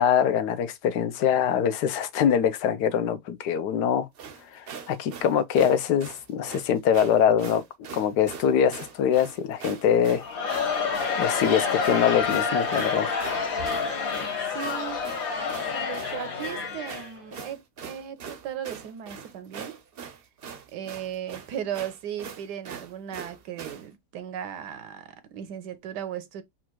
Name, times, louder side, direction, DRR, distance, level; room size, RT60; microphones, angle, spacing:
voice 1, 0.0-4.1 4.5-7.6 7.9-10.2 11.2-13.1, left 8 dB, 80° left, 1.3 m, -23 dB
sound 1, 4.1-23.9, right 6 dB, 55° right, 0.6 m, -42 dB
Crowd, 10.2-17.5, left 5 dB, 60° left, 1.8 m, -28 dB
voice 2, 14.4-15.1 15.7-19.8 20.7-26.4, right 10 dB, 85° right, 1.4 m, -36 dB
4.3 x 2.4 x 4.5 m
omnidirectional pair, 1.7 m